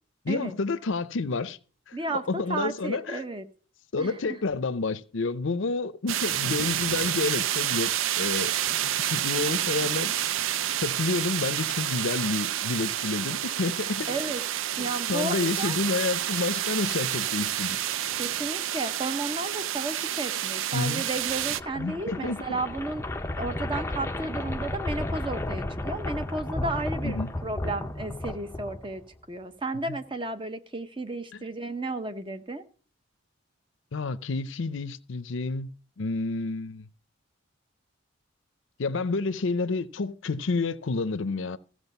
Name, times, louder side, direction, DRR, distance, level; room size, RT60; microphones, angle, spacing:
voice 1, 0.2-1.6 1.9-3.2 3.9-7.9 8.2-8.5 8.8-10.1 10.8-14.3 14.8-17.8 20.7-21.1 21.8-22.6 27.0-27.3 29.9-30.0 31.3-31.4 33.9-35.7 36.0-36.9 38.8-41.6, left 3 dB, 65° left, 0.6 m, -29 dB
voice 2, 1.9-3.4 4.0-4.4 14.1-14.4 14.8-15.8 18.2-23.0 23.4-29.0 29.3-32.6, right 2 dB, 25° right, 0.8 m, -33 dB
sound 1, 6.1-21.6, right 12 dB, 70° right, 0.4 m, -29 dB
sound 2, 21.2-29.2, left 1 dB, 10° left, 0.5 m, -33 dB
15.0 x 6.3 x 5.4 m
head